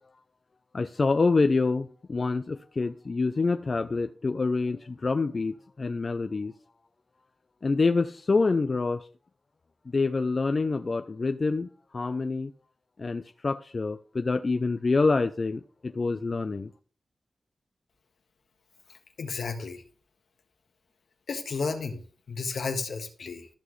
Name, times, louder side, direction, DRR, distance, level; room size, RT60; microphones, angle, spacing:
voice 1, 0.7-6.5 7.6-9.0 9.9-11.7 11.9-12.5 13.0-15.6 15.9-16.7, left 3 dB, 50° left, 0.6 m, -26 dB
voice 2, 19.2-19.8 21.3-22.0 22.3-23.5, left 4 dB, 80° left, 1.6 m, -32 dB
13.5 x 6.1 x 3.2 m
cardioid pair, 60°, 0 cm